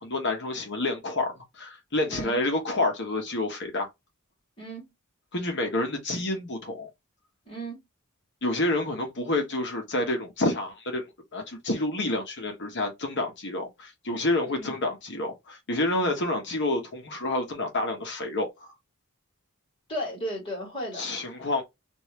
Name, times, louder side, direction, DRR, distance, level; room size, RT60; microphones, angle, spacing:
voice 1, 0.0-3.9 5.3-6.9 8.4-18.7 20.9-21.6, left 2 dB, 55° left, 1.1 m, -29 dB
voice 2, 2.1-2.4 4.6-4.9 7.5-7.8 14.5-14.7 19.9-21.1, equal, 25° left, 1.9 m, -35 dB
3.1 x 2.7 x 3.1 m
head